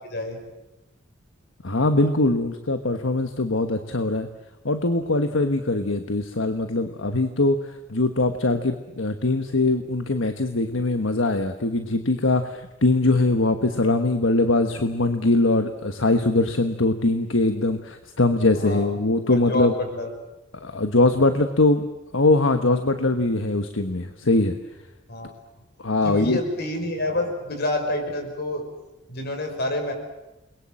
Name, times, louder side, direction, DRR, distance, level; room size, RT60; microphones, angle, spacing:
voice 1, 0.1-0.4 18.5-18.9 19.3-20.1 25.1-25.3 26.0-28.6 29.1-29.9, left 1 dB, 55° left, 5 dB, 5.8 m, -28 dB
voice 2, 1.6-4.3 4.6-19.7 20.6-21.9 22.1-24.6 25.8-26.4, left 2 dB, 75° left, 7 dB, 1.4 m, -22 dB
29.0 x 22.0 x 7.7 m, 0.98 s
head